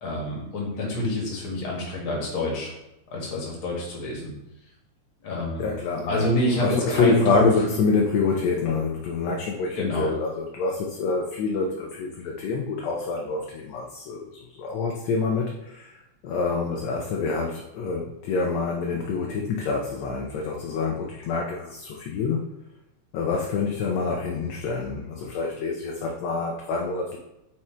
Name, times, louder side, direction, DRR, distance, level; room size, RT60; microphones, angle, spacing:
voice 1, 0.0-2.7 3.1-4.3 5.2-5.7 6.1-7.5 9.7-10.1, left 1 dB, 50° left, -3 dB, 2.3 m, -27 dB
voice 2, 5.6-6.3 6.6-22.4 23.1-27.2, left 4 dB, 75° left, 0 dB, 1.8 m, -26 dB
4.9 x 4.4 x 4.4 m, 0.90 s
omnidirectional pair, 3.3 m